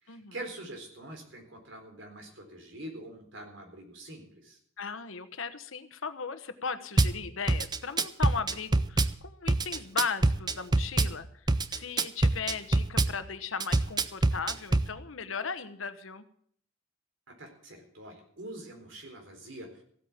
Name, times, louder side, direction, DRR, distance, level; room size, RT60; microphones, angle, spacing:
voice 1, 0.0-4.6 17.3-19.8, right 1 dB, 65° right, 3 dB, 4.1 m, -45 dB
voice 2, 4.8-11.3 11.7-16.2, left 5 dB, 80° left, 11 dB, 1.1 m, -37 dB
Drum kit / Bass drum, 7.0-7.1 7.5-9.1 9.5-11.1 11.5-13.1 13.6-14.9, right 2 dB, 20° right, 0.6 m, -25 dB
15.5 x 8.7 x 7.2 m, 0.62 s
head